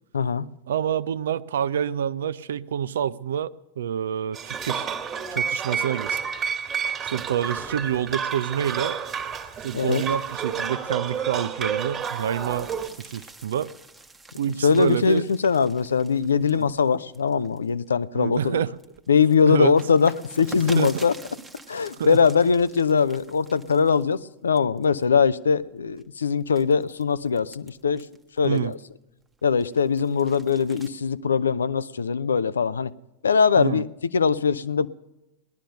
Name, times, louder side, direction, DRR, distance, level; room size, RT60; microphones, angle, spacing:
voice 1, 0.1-0.5 9.7-10.0 14.6-18.6 19.1-21.1 21.7-28.0 28.4-28.8 29.4-32.9 33.2-33.9 34.1-34.9, left 6 dB, 70° left, 0.5 m, -21 dB
voice 2, 0.7-4.9 5.3-6.2 7.0-9.0 9.6-12.7 13.0-13.7 14.4-15.3 16.5-16.7 18.1-18.7 19.5-19.8 20.6-20.9 22.0-22.2 28.4-28.8 33.6-33.8, right 9 dB, 60° right, 0.5 m, -27 dB
sound 1, 4.3-12.9, right 6 dB, 25° right, 1.8 m, -30 dB
sound 2, 12.0-17.9 18.4-24.2 24.6-25.0 25.6-28.9 29.3-30.9, right 3 dB, 10° right, 1.1 m, -47 dB
18.0 x 11.5 x 6.6 m
figure-of-eight pair, 90°, 0 cm